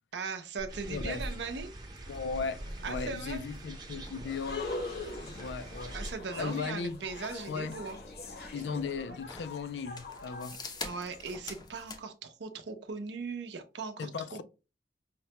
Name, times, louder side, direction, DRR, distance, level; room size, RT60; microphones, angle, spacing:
voice 1, 0.1-1.7 2.8-3.4 5.9-8.0 10.8-14.4, right 4 dB, 75° right, 0.6 m, -39 dB
sound 1, 0.6-12.0, left 2 dB, 25° left, 0.5 m, -47 dB
sound 2, 0.7-6.1, right 1 dB, 25° right, 0.7 m, -43 dB
voice 2, 0.9-1.2 2.1-4.7 5.2-6.0 6.4-7.0 7.5-7.8 8.5-10.6 14.0-14.4, left 5 dB, 80° left, 0.4 m, -37 dB
sound 3, 4.3-11.2, left 3 dB, 60° left, 0.8 m, -43 dB
5.7 x 2.1 x 2.8 m
head